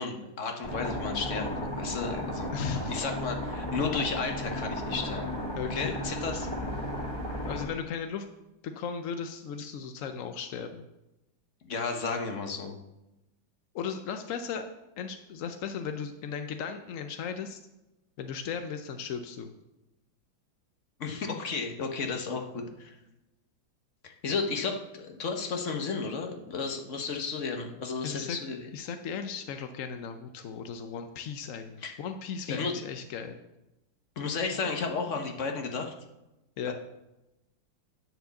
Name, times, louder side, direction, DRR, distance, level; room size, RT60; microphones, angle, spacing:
voice 1, 0.0-2.5 2.9-5.3 5.7-6.5 11.6-12.8 21.0-23.0 24.0-28.6 31.8-31.9 32.5-32.7 34.2-35.9 36.7-36.8, left 4 dB, 45° left, 3 dB, 1.3 m, -33 dB
sound 1, 0.6-7.7, left 1 dB, 20° left, 2.2 m, -34 dB
voice 2, 2.5-3.0 5.6-6.0 7.5-8.2 8.6-10.9 13.7-14.7 15.0-17.6 18.2-19.5 28.0-28.4 28.7-33.4 36.6-36.7, left 7 dB, 70° left, 7 dB, 0.7 m, -36 dB
10.0 x 4.7 x 6.9 m, 0.95 s
omnidirectional pair, 2.1 m